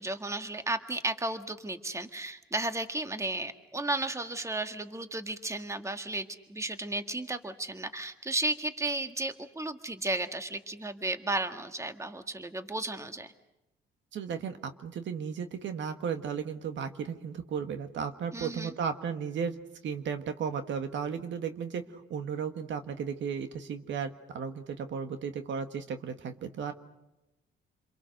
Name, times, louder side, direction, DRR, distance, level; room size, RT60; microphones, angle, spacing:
voice 1, 0.0-13.3 18.3-18.7, right 2 dB, 15° right, 8 dB, 1.7 m, -34 dB
voice 2, 14.1-19.5 19.8-26.7, right 6 dB, 70° right, 8 dB, 1.7 m, -35 dB
29.0 x 23.0 x 6.6 m, 0.95 s
cardioid pair, 90°, 20 cm